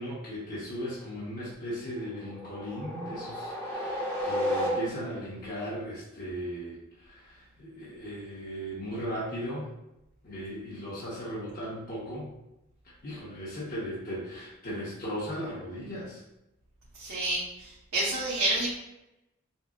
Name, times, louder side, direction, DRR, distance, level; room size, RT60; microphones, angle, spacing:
voice 1, 0.0-9.7 10.2-12.3 13.0-16.2, equal, 45° left, -8 dB, 1.1 m, -37 dB
sound 1, 2.0-5.3, left 1 dB, 10° left, 0.8 m, -32 dB
voice 2, 17.0-18.8, right 2 dB, 80° right, -9 dB, 1.1 m, -29 dB
5.5 x 2.1 x 2.5 m, 0.91 s
head